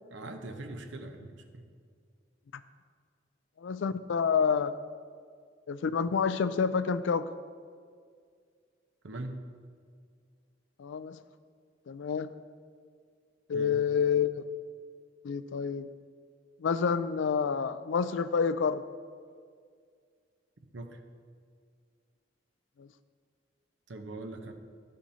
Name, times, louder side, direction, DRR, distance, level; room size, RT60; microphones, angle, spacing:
voice 1, 0.1-1.7 9.0-9.4 13.5-13.8 20.7-21.0 23.9-24.5, right 2 dB, 80° right, 6 dB, 0.8 m, -41 dB
voice 2, 3.6-4.8 5.7-7.3 10.8-11.2 11.9-12.3 13.5-14.4 15.2-15.9 16.6-18.8 22.8-22.9, left 6 dB, 85° left, 13 dB, 0.4 m, -28 dB
12.0 x 8.8 x 2.8 m, 2.1 s
head